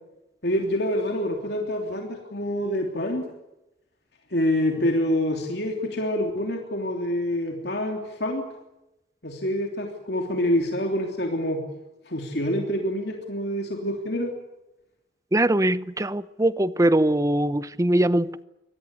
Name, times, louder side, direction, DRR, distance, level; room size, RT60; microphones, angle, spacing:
voice 1, 0.4-3.2 4.3-8.5 9.2-11.6 12.1-14.3, left 1 dB, 65° left, 3.2 m, -26 dB
voice 2, 15.3-18.4, right 1 dB, 20° right, 0.8 m, -22 dB
25.0 x 19.0 x 8.3 m
head